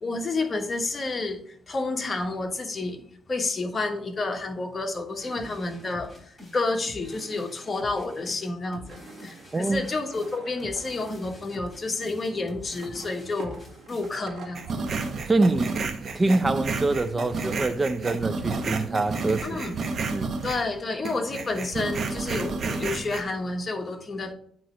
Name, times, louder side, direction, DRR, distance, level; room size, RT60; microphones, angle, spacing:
voice 1, 0.0-3.0 3.3-13.6 13.9-14.7 19.4-19.8 20.4-24.3, left 3 dB, 35° left, 1.2 m, -30 dB
sound 1, 5.2-14.2, left 1 dB, 15° left, 3.4 m, -46 dB
sound 2, 8.9-15.8, right 5 dB, 65° right, 1.5 m, -48 dB
voice 2, 9.5-9.8 15.3-15.7 16.1-19.6 20.1-20.3, right 2 dB, 25° right, 0.6 m, -25 dB
sound 3, 14.5-20.7 21.0-23.2, right 4 dB, 50° right, 0.9 m, -31 dB
9.2 x 3.1 x 5.6 m
cardioid pair, 90°, 0 cm